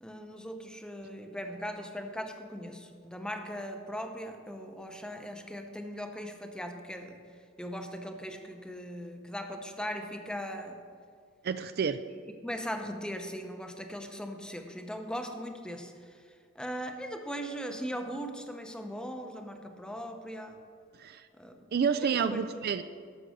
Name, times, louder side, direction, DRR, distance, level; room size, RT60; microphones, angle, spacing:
voice 1, 0.0-7.2 7.6-10.8 12.4-16.2 16.5-20.6 21.3-21.7 22.0-22.6, equal, 5° left, 5 dB, 0.8 m, -39 dB
voice 2, 11.4-12.0 21.0-21.3 21.7-22.8, right 6 dB, 50° right, 11 dB, 0.4 m, -29 dB
12.5 x 6.8 x 6.4 m, 2.2 s
head